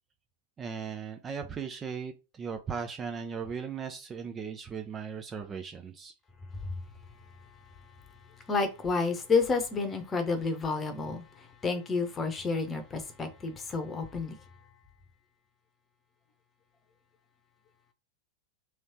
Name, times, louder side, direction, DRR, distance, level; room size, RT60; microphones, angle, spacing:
voice 1, 0.6-6.1, right 6 dB, 20° right, 0.5 m, -37 dB
voice 2, 8.5-14.4, left 4 dB, 20° left, 0.9 m, -30 dB
3.2 x 3.0 x 4.3 m
figure-of-eight pair, 90°, 0 cm